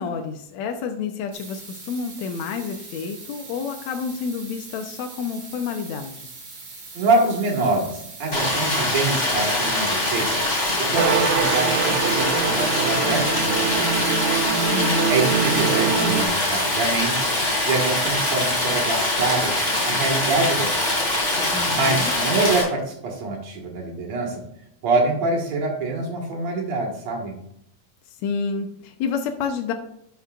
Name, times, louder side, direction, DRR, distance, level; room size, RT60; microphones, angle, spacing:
voice 1, 0.0-6.3 14.7-15.5 21.5-22.1 28.2-29.7, left 5 dB, 75° left, 4 dB, 1.9 m, -29 dB
sound 1, 1.3-17.1, right 3 dB, 40° right, 2.5 m, -41 dB
voice 2, 6.9-14.2 15.1-17.3 17.7-19.5 19.8-20.9 21.7-24.4 24.8-27.4, right 3 dB, 65° right, 1 dB, 2.8 m, -25 dB
Stream, 8.3-22.6, left 1 dB, 15° left, 2.0 m, -23 dB
sound 2, 11.0-16.3, right 6 dB, 80° right, 2.1 m, -24 dB
11.5 x 5.9 x 2.5 m, 0.75 s
omnidirectional pair, 3.4 m